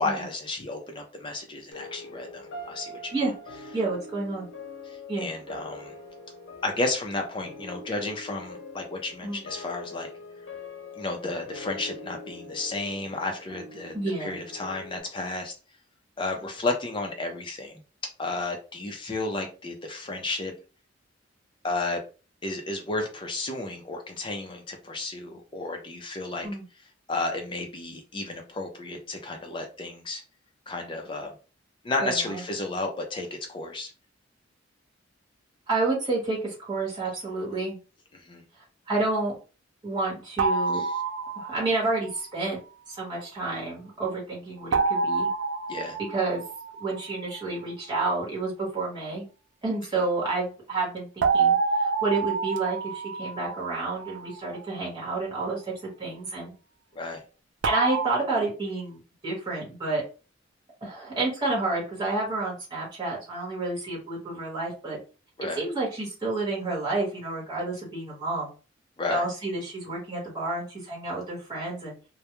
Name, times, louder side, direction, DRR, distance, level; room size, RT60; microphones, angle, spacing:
voice 1, 0.0-3.1 4.9-5.9 6.6-10.1 11.0-13.9 14.2-15.5 16.2-17.8 18.2-20.5 21.6-22.0 22.4-26.5 27.1-30.2 30.7-31.3 31.8-33.9 38.1-38.4 40.7-40.9 45.7-46.0 56.9-57.2 65.4-65.6 69.0-69.2, left 2 dB, 25° left, 3 dB, 0.4 m, -32 dB
sound 1, 1.7-15.0, left 2 dB, 75° left, 0.7 m, -43 dB
voice 2, 3.7-4.5 5.1-5.3 9.2-9.4 13.9-14.4 26.4-26.6 32.0-32.4 35.7-37.8 38.9-39.4 39.8-40.8 41.3-42.6 42.9-45.3 46.1-46.4 46.8-49.2 49.6-56.5 57.6-60.0 60.8-65.0 65.6-68.5 69.1-71.9, right 3 dB, 20° right, -5 dB, 1.1 m, -30 dB
sound 2, 40.4-41.9 44.7-47.2 51.2-54.4 57.6-58.1, right 4 dB, 70° right, 0.3 m, -27 dB
2.3 x 2.1 x 2.9 m, 0.34 s
head